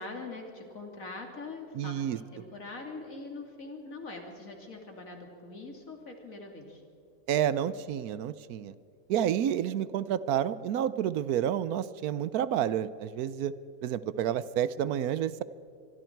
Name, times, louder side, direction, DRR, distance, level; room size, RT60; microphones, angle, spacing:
voice 1, 0.0-6.8, left 3 dB, 60° left, 2 dB, 3.2 m, -43 dB
voice 2, 1.7-2.2 7.3-8.7 9.1-13.5 13.8-15.4, right 10 dB, 75° right, 16 dB, 1.1 m, -29 dB
25.0 x 23.5 x 4.6 m, 2.5 s
omnidirectional pair, 1.6 m